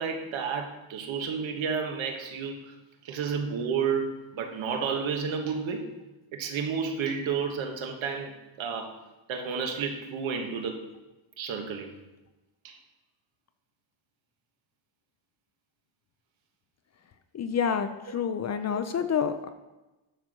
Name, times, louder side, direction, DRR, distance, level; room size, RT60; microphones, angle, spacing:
voice 1, 0.0-2.7 3.0-5.9 6.3-9.0 9.3-10.8 11.4-11.9 12.6-12.8 18.1-18.2 18.7-18.8, right 6 dB, 70° right, 4 dB, 1.5 m, -31 dB
voice 2, 17.3-19.5, left 7 dB, 35° left, 10 dB, 0.4 m, -28 dB
11.5 x 4.5 x 6.6 m, 1.1 s
cardioid pair, 175°, 49 cm